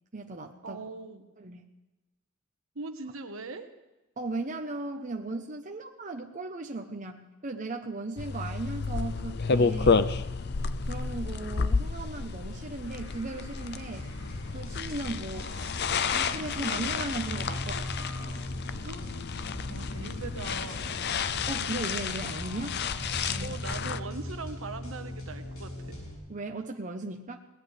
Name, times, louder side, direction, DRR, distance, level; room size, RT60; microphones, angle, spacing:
voice 1, 0.1-0.8 1.4-1.6 4.2-10.1 10.9-14.1 14.5-15.5 16.1-18.1 21.5-22.8 23.3-23.6 26.3-27.4, right 2 dB, 35° right, 3 dB, 1.0 m, -37 dB
voice 2, 0.6-1.3 2.7-3.7 18.8-19.4 19.7-21.0 23.4-25.9, right 3 dB, 70° right, 7 dB, 1.4 m, -41 dB
sound 1, 8.2-24.0, left 5 dB, 50° left, 0.6 m, -31 dB
Singing, 12.6-23.1, left 1 dB, 65° left, 4.4 m, -51 dB
sound 2, 13.9-26.2, left 1 dB, 85° left, 7.6 m, -40 dB
21.5 x 18.0 x 3.5 m, 1.1 s
head